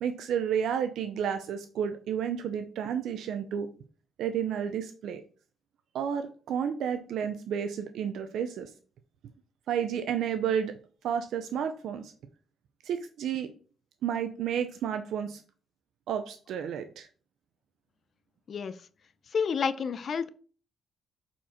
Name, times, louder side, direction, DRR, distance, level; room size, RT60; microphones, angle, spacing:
voice 1, 0.0-3.7 4.2-5.2 5.9-8.7 9.7-10.8 11.0-12.1 12.8-13.5 14.0-15.4 16.1-17.1, right 8 dB, 75° right, 0.7 m, -31 dB
voice 2, 19.3-20.3, left 6 dB, 50° left, 0.6 m, -29 dB
7.1 x 4.5 x 4.4 m
cardioid pair, 90°, 0 cm